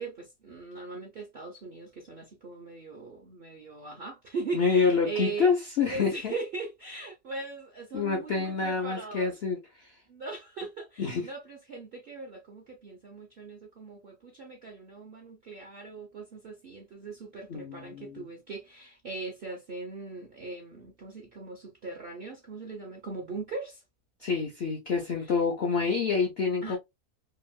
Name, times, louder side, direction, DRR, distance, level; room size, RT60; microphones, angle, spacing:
voice 1, 0.0-5.5 5.9-9.3 10.1-23.8 25.2-25.4 26.6-26.8, right 3 dB, 60° right, 0.6 m, -40 dB
voice 2, 4.5-6.3 7.9-9.6 11.0-11.3 17.5-18.3 24.2-26.8, left 5 dB, 65° left, 0.6 m, -27 dB
2.9 x 2.6 x 2.3 m
omnidirectional pair, 1.7 m